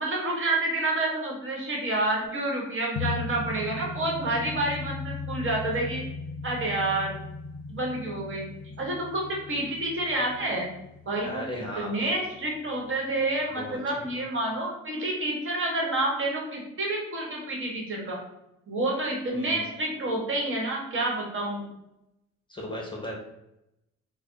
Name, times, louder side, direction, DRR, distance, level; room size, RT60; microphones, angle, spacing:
voice 1, 0.0-6.0 6.4-7.2 7.7-8.5 8.8-10.7 11.1-11.4 11.8-18.2 18.7-21.7, right 2 dB, 45° right, -1 dB, 1.2 m, -29 dB
sound 1, 3.0-12.1 12.4-12.5, left 4 dB, 70° left, 0.5 m, -37 dB
voice 2, 11.2-12.0 13.5-14.2 19.3-19.7 20.0-20.1 22.5-23.2, left 1 dB, 15° left, -2 dB, 0.8 m, -37 dB
3.3 x 2.1 x 3.8 m, 0.86 s
cardioid pair, 90°, 30 cm